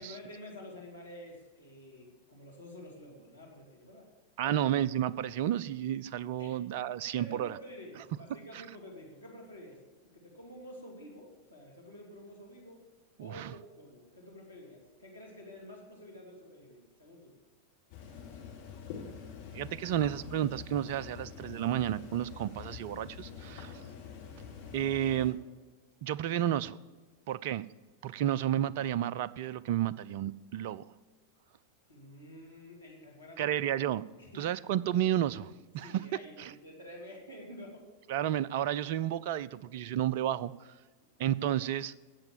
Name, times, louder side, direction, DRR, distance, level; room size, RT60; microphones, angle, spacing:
voice 1, 0.0-4.1 4.4-4.7 6.4-6.6 7.2-9.8 10.1-12.8 13.2-17.4 23.4-23.6 31.9-33.5 34.2-34.5 35.8-37.9, left 1 dB, 85° left, -2 dB, 2.8 m, -49 dB
voice 2, 4.4-7.6 8.5-8.6 13.2-13.5 19.5-23.7 24.7-25.4 26.0-26.8 27.3-27.7 28.0-30.8 33.4-34.0 34.4-36.0 36.4-36.5 38.1-40.7 41.2-41.9, right 11 dB, 50° right, 19 dB, 0.4 m, -31 dB
sound 1, 17.9-25.3, left 6 dB, 50° left, 4.0 m, -46 dB
16.5 x 7.0 x 7.3 m, 1.3 s
figure-of-eight pair, 90°, 0 cm